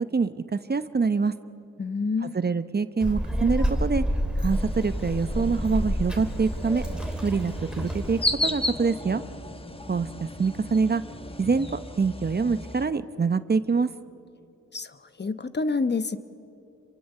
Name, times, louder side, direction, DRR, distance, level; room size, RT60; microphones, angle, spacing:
voice 1, 0.1-1.3 2.2-4.0 4.4-6.8 7.2-9.2 9.9-11.0 11.4-13.9, right 4 dB, 30° right, 12 dB, 0.9 m, -25 dB
voice 2, 1.8-2.3 14.7-16.2, left 4 dB, 35° left, 12 dB, 1.0 m, -28 dB
Child speech kid speaking, 3.0-8.3, equal, 5° right, 3.0 m, -29 dB
sound 1, 4.5-12.9, left 1 dB, 15° left, 1.4 m, -35 dB
27.5 x 23.5 x 6.8 m, 2.7 s
cardioid pair, 60°, 32 cm